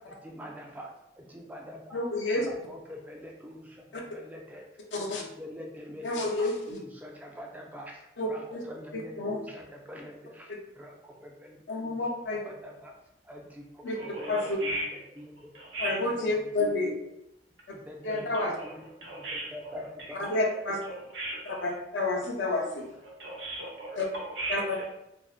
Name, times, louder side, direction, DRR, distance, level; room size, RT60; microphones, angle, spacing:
voice 1, 0.2-0.9 1.2-1.8 2.4-4.6 4.9-6.2 6.7-10.5 10.8-12.0 12.4-12.9 13.3-14.8 15.2-15.3 16.2-16.3 16.7-16.8 17.7-18.8 19.2-20.2, left 1 dB, 10° right, -1 dB, 0.3 m, -45 dB
voice 2, 1.9-2.5 3.9-4.0 4.9-5.2 6.0-6.8 8.2-8.6 8.9-9.4 11.7-12.4 13.8-14.0 14.3-14.6 15.8-16.9 18.0-18.5 20.1-20.8 21.5-22.9 24.0-24.1 24.5-24.9, left 2 dB, 85° left, 0 dB, 0.5 m, -30 dB
voice 3, 14.0-14.9 15.5-16.0 18.1-18.7 19.0-20.4 21.1-21.6 23.2-24.8, right 1 dB, 85° right, -3 dB, 0.8 m, -37 dB
2.5 x 2.0 x 2.4 m, 0.84 s
head